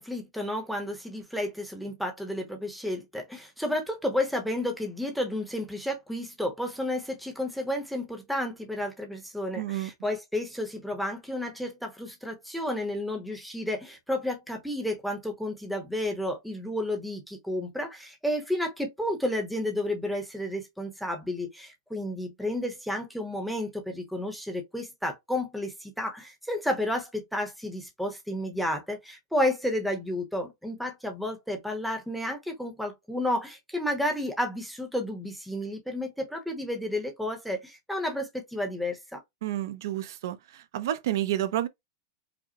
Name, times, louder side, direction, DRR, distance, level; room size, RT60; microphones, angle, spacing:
voice 1, 0.0-39.2, left 1 dB, ahead, 0.8 m, -31 dB
voice 2, 9.5-9.9 39.4-41.7, right 13 dB, 65° right, 0.5 m, -30 dB
4.9 x 2.0 x 2.8 m
supercardioid pair, 170°, 2 cm